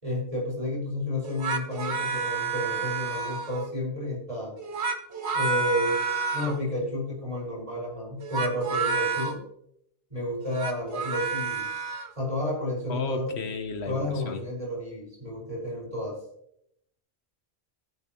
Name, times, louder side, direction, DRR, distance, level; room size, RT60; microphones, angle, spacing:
voice 1, 0.0-4.5 5.3-6.0 6.3-9.4 10.1-11.7 12.2-13.5 13.8-16.2, left 1 dB, 35° right, -2 dB, 5.2 m, -31 dB
sound 1, 1.2-3.7 4.6-6.6 8.2-9.4 10.4-12.1, right 4 dB, 90° right, 1.4 m, -30 dB
voice 2, 12.9-14.4, left 4 dB, 80° left, 8 dB, 1.4 m, -34 dB
13.5 x 10.5 x 3.0 m, 0.72 s
omnidirectional pair, 1.1 m